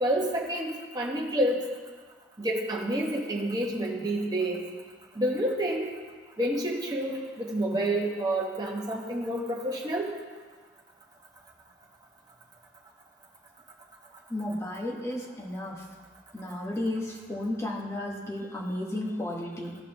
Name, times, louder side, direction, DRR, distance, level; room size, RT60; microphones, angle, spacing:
voice 1, 0.0-1.6 2.4-4.6 5.1-5.9 6.4-10.1, right 1 dB, 20° right, -3 dB, 1.4 m, -29 dB
voice 2, 14.3-15.7 16.3-19.8, left 1 dB, 15° left, -3 dB, 1.4 m, -33 dB
16.5 x 6.0 x 3.0 m, 1.5 s
head